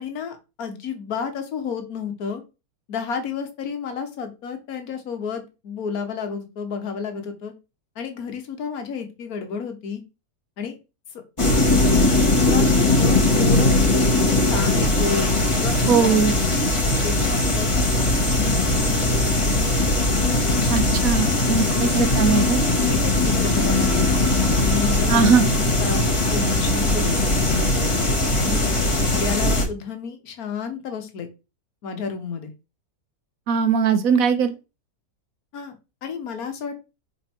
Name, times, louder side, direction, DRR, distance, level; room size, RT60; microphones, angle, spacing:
voice 1, 0.0-2.4 2.9-7.5 7.9-10.0 10.6-10.8 11.4-13.8 14.5-15.3 15.6-16.3 16.8-17.7 18.4-19.9 21.5-21.8 22.1-22.2 22.9-24.2 24.6-27.7 28.4-28.7 29.0-31.3 31.8-32.5 35.5-36.9, left 6 dB, 75° left, 6 dB, 1.6 m, -31 dB
sound 1, 11.4-29.7, left 2 dB, 20° left, 1.4 m, -20 dB
voice 2, 15.9-16.3 20.7-22.6 25.1-25.4 33.5-34.5, right 6 dB, 65° right, 10 dB, 1.2 m, -20 dB
5.3 x 4.0 x 4.4 m, 0.28 s
omnidirectional pair, 1.6 m